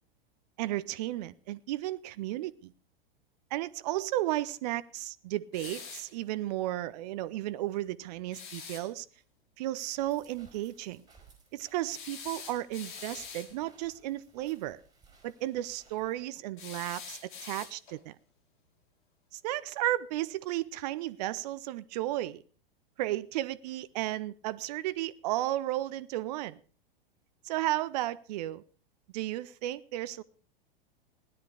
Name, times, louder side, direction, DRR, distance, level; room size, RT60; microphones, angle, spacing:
voice 1, 0.6-2.7 3.5-9.1 9.6-11.0 11.5-14.8 15.2-18.2 19.3-22.4 23.0-26.6 27.4-28.6 29.1-30.2, right 15 dB, 45° right, 0.6 m, -34 dB
sound 1, 5.5-6.1 8.3-8.9 11.9-13.5 16.6-18.0, left 6 dB, 55° left, 2.5 m, -44 dB
sound 2, 10.0-16.1, right 4 dB, 15° right, 4.3 m, -61 dB
17.0 x 10.5 x 4.9 m
figure-of-eight pair, 95°, 29 cm